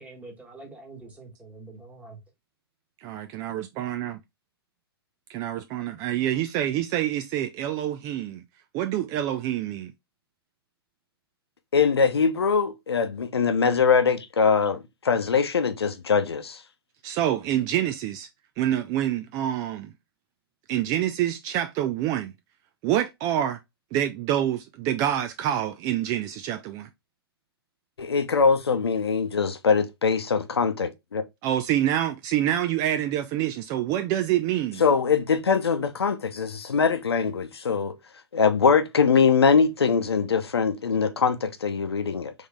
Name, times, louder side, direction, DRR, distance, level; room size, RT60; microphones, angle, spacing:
voice 1, 0.0-2.2, right 3 dB, 10° right, 1.4 m, -45 dB
voice 2, 3.0-4.2 5.3-8.4 8.7-9.9 17.0-18.3 18.6-19.9 20.7-22.3 22.8-23.6 23.9-26.9 31.4-34.8, right 12 dB, 25° right, 0.3 m, -26 dB
voice 3, 11.7-16.6 28.0-31.2 34.8-38.0 38.3-42.3, left 5 dB, 75° left, 0.8 m, -22 dB
3.8 x 3.5 x 3.5 m
figure-of-eight pair, 115°, 13 cm